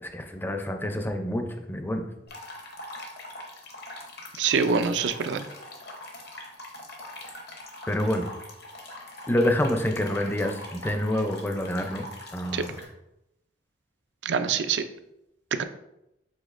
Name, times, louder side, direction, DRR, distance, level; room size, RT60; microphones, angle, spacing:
voice 1, 0.0-2.1 7.9-8.3 9.3-12.1 12.3-12.7, left 1 dB, 10° left, 4 dB, 0.4 m, -27 dB
sound 1, 2.3-12.8, left 1 dB, 65° left, 0.9 m, -43 dB
voice 2, 4.4-5.4 12.5-12.6 14.2-14.8 15.6-15.7, right 5 dB, 80° right, 10 dB, 0.4 m, -25 dB
5.1 x 3.6 x 2.5 m, 0.86 s
head